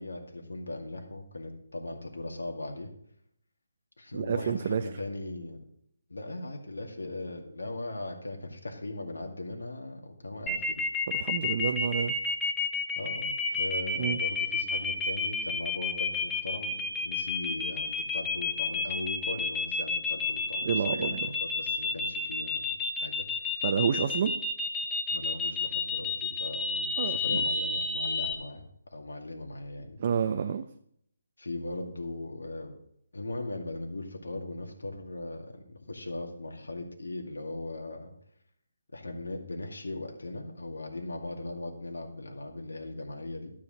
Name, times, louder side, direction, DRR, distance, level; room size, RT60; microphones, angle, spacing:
voice 1, 0.0-2.9 4.0-5.6 6.1-10.8 13.0-22.7 23.0-23.2 25.1-28.6 28.9-30.0 31.4-32.8 33.1-38.1 38.9-43.5, left 2 dB, 90° left, 2 dB, 2.2 m, -39 dB
voice 2, 4.1-4.9 11.1-12.1 14.0-14.2 20.6-21.3 23.6-24.3 27.0-27.4 30.0-30.6, right 7 dB, 40° right, 8 dB, 0.6 m, -29 dB
sound 1, 10.5-28.3, left 4 dB, 10° left, 0.9 m, -30 dB
12.5 x 4.9 x 7.5 m, 0.71 s
hypercardioid pair, 160°, 0 cm